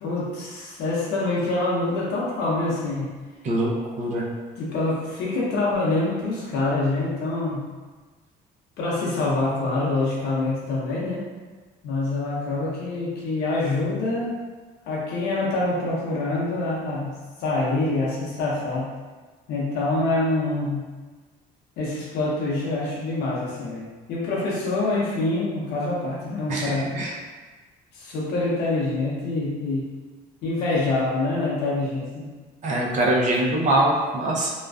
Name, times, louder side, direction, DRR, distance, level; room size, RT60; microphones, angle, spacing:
voice 1, 0.0-3.1 4.6-7.6 8.8-11.2 11.8-14.3 14.9-17.1 17.4-18.9 19.5-20.8 21.8-26.9 27.9-29.9 30.4-32.4, left 2 dB, 80° left, -5 dB, 0.7 m, -25 dB
voice 2, 26.5-27.1 32.6-34.5, right 1 dB, 45° right, -3 dB, 0.5 m, -23 dB
2.4 x 2.2 x 2.2 m, 1.3 s
cardioid pair, 110°, 17 cm